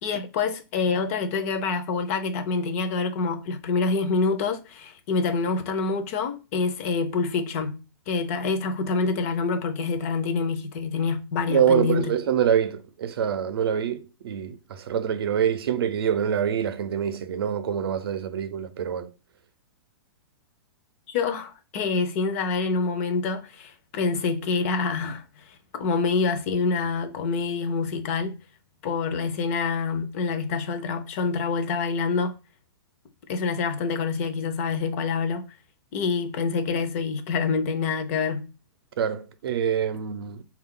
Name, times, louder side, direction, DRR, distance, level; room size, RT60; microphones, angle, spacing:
voice 1, 0.0-7.8 8.1-12.1 21.1-28.4 28.8-32.4 33.3-35.4 35.9-38.5, left 4 dB, 35° left, 0.5 m, -26 dB
voice 2, 11.5-19.1 25.0-25.1 39.0-40.4, right 8 dB, 75° right, 0.5 m, -25 dB
3.9 x 2.3 x 3.6 m
hypercardioid pair, 160°, 13 cm